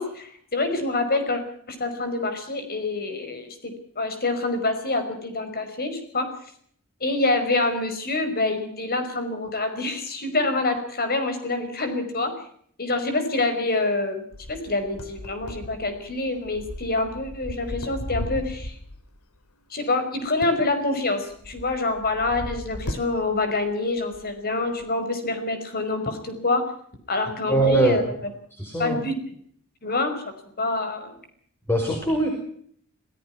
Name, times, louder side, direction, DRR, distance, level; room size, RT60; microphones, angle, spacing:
voice 1, 0.0-1.4 1.7-6.3 7.0-12.3 12.8-18.8 19.7-26.7 27.1-28.0 28.8-29.2 29.8-31.1, left 2 dB, 45° left, 8 dB, 5.4 m, -26 dB
sound 1, 14.3-19.1 20.2-23.7 24.0-24.3 24.8-24.9, left 1 dB, 80° left, 3.0 m, -37 dB
voice 2, 27.5-28.0 28.6-29.0 31.7-32.3, right 2 dB, 10° left, 2 dB, 5.1 m, -21 dB
26.5 x 17.5 x 6.0 m, 0.63 s
head